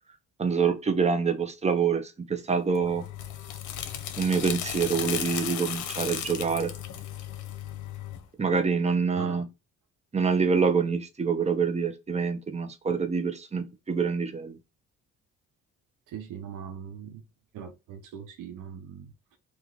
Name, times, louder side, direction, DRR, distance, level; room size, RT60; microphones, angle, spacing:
voice 1, 0.4-3.0 4.2-6.7 8.4-9.4 10.1-14.6, right 5 dB, 20° right, 0.7 m, -26 dB
sound 1, 2.8-8.2, left 10 dB, 80° left, 0.7 m, -35 dB
voice 2, 9.2-9.5 16.1-17.2 17.5-19.4, right 8 dB, 90° right, 0.7 m, -41 dB
3.1 x 2.5 x 3.7 m
cardioid pair, 90°, 30 cm